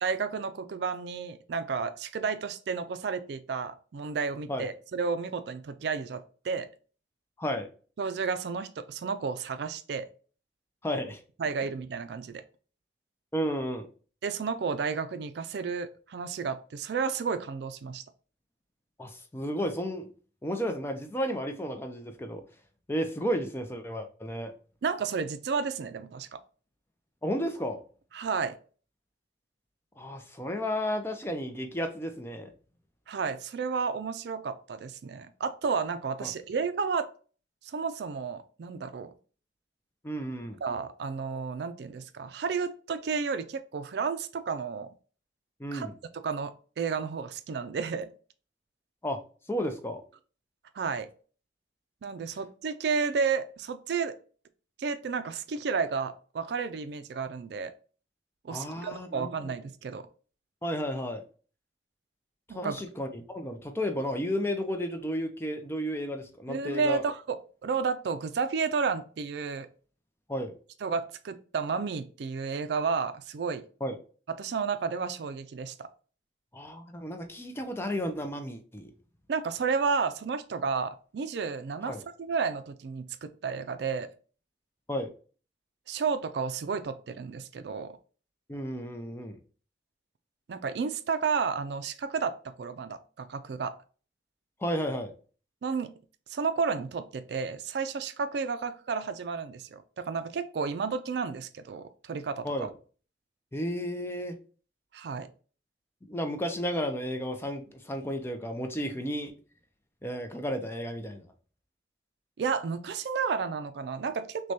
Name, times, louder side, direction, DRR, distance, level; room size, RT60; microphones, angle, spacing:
voice 1, 0.0-6.7 8.0-10.1 11.4-12.4 14.2-18.0 24.8-26.4 28.1-28.5 33.1-37.1 37.7-39.1 40.6-44.9 45.7-45.9 46.2-48.1 50.7-51.1 52.0-54.1 54.8-57.7 58.4-60.1 62.5-62.8 66.5-67.4 67.6-69.7 70.8-73.6 74.3-75.9 79.3-84.1 85.9-88.0 90.5-93.7 95.6-95.9 96.3-102.7 104.9-105.3 112.4-114.5, right 5 dB, 65° right, 0.4 m, -32 dB
voice 2, 10.8-11.2 13.3-13.9 19.0-20.1 20.4-22.4 22.9-24.5 27.2-27.8 30.0-32.5 36.2-36.3 40.0-40.6 45.6-45.9 49.0-49.2 49.5-50.0 58.5-59.3 60.6-61.2 62.5-67.0 70.3-70.5 73.8-74.0 76.5-78.9 81.9-82.0 84.9-85.1 88.5-89.4 94.6-95.1 102.4-102.7 103.5-104.3 106.1-109.3 110.0-111.2, equal, 15° left, 0.4 m, -33 dB
6.1 x 2.2 x 2.7 m
head